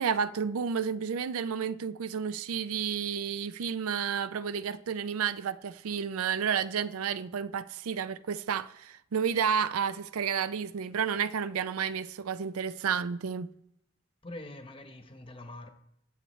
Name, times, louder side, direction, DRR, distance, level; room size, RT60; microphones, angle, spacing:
voice 1, 0.0-13.5, right 7 dB, 85° right, 0.4 m, -31 dB
voice 2, 14.2-15.7, left 1 dB, 25° left, 0.9 m, -44 dB
21.0 x 7.7 x 3.1 m
head